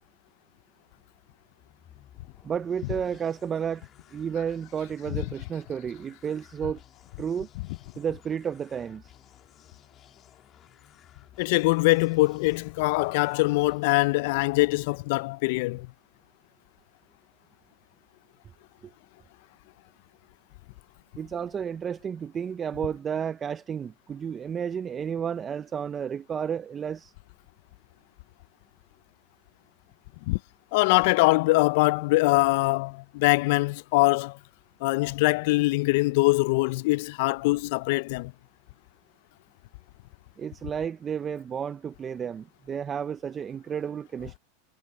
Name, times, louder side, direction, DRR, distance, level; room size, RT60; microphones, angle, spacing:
sound 1, 1.5-15.3, left 10 dB, 35° left, 3.3 m, -56 dB
voice 1, 2.4-6.8 7.2-7.5 8.0-9.1 18.8-18.9 21.2-27.1 40.4-44.4, right 7 dB, 25° right, 0.5 m, -32 dB
voice 2, 11.4-15.9 30.3-30.4 30.7-34.4 34.8-38.3, left 22 dB, 65° left, 0.4 m, -23 dB
supercardioid pair, 120°, 0 cm